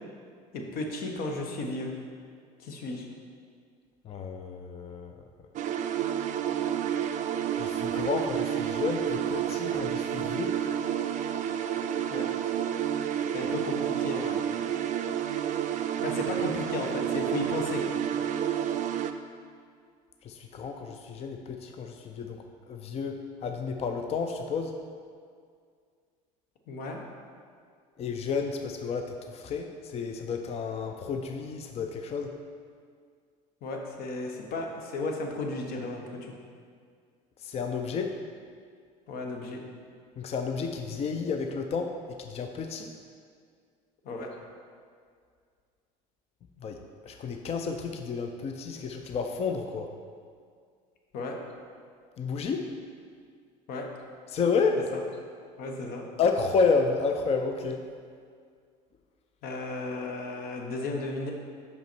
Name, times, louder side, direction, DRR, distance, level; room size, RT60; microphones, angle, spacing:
voice 1, 0.5-1.9 2.6-3.1 12.1-12.3 13.3-14.4 16.0-18.0 26.7-27.0 33.6-36.3 39.1-39.6 44.0-44.3 51.1-51.4 53.7-53.9 54.9-55.0 55.6-56.0 59.4-61.3, left 2 dB, 60° left, 2 dB, 1.1 m, -34 dB
voice 2, 4.0-5.2 7.6-10.6 20.2-24.7 28.0-32.3 37.4-38.1 40.2-41.9 42.2-42.9 46.6-49.9 52.2-52.7 54.3-54.8 56.2-57.8, left 5 dB, 35° left, 5 dB, 0.5 m, -31 dB
sound 1, 5.6-19.1, right 9 dB, 45° right, 0.4 m, -30 dB
5.5 x 5.5 x 4.5 m, 2.1 s
supercardioid pair, 90°, 18 cm